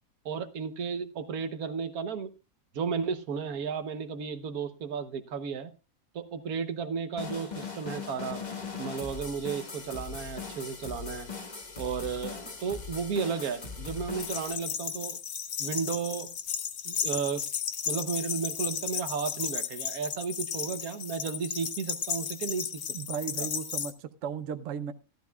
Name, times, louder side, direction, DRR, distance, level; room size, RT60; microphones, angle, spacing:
voice 1, 0.2-2.3 2.7-5.7 6.1-8.4 8.8-11.3 11.8-15.2 15.6-16.3 16.8-17.4 17.9-22.8 23.4-23.5, right 6 dB, 90° right, 10 dB, 1.4 m, -33 dB
sound 1, 7.2-14.5, left 5 dB, 30° left, 1.3 m, -40 dB
sound 2, 14.2-23.9, left 8 dB, 85° left, 1.5 m, -34 dB
voice 2, 22.9-24.9, right 7 dB, 65° right, 11 dB, 1.0 m, -35 dB
14.5 x 12.5 x 2.3 m, 0.30 s
omnidirectional pair, 1.5 m